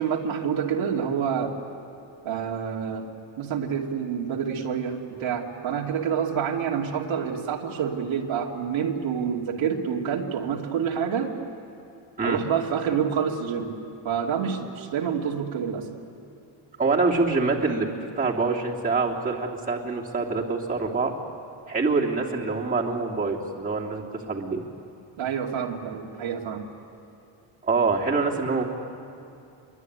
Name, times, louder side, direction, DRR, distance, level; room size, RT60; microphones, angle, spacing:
voice 1, 0.0-1.5 2.2-3.1 3.4-11.3 12.2-13.7 14.0-15.9 25.2-26.7, right 7 dB, 70° right, -1 dB, 2.8 m, -27 dB
voice 2, 16.8-17.9 18.2-21.1 21.7-24.6 27.6-28.6, right 4 dB, 15° right, -3 dB, 3.0 m, -25 dB
26.0 x 23.0 x 9.6 m, 2.7 s
cardioid pair, 130°, 49 cm